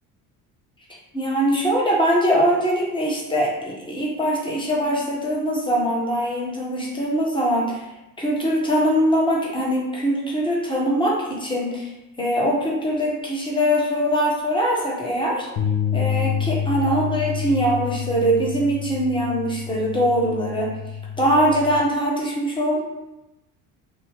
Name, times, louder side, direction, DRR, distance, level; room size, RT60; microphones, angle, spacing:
voice 1, 1.1-7.8 8.2-11.9 12.2-15.5 15.9-20.7 21.2-22.8, equal, 10° left, -3 dB, 0.9 m, -22 dB
sound 1, 15.6-21.8, left 8 dB, 45° left, 0.5 m, -28 dB
2.8 x 2.1 x 3.2 m, 0.94 s
hypercardioid pair, 70°, 45 cm